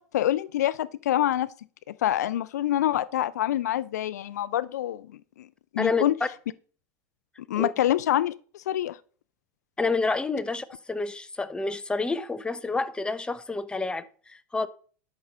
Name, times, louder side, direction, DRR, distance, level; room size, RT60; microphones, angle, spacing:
voice 1, 0.0-1.5 1.9-5.1 5.4-5.5 5.7-6.2 7.5-9.0, left 12 dB, 85° left, 0.4 m, -26 dB
voice 2, 9.8-14.7, left 3 dB, 10° left, 0.9 m, -29 dB
11.5 x 6.1 x 4.2 m
hypercardioid pair, 100°, 9 cm